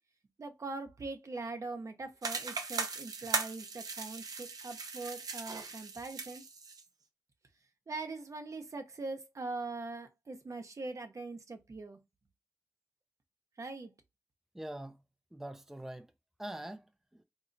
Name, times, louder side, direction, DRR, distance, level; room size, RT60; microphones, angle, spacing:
voice 1, 0.4-6.4 7.9-12.0 13.6-13.9, right 3 dB, 60° right, 0.8 m, -42 dB
sound 1, 2.2-6.8, right 4 dB, 90° right, 0.6 m, -38 dB
voice 2, 14.5-15.0 15.3-16.1 16.4-17.2, right 1 dB, 5° right, 0.4 m, -44 dB
4.0 x 3.0 x 2.6 m
wide cardioid pair, 90°, 6 cm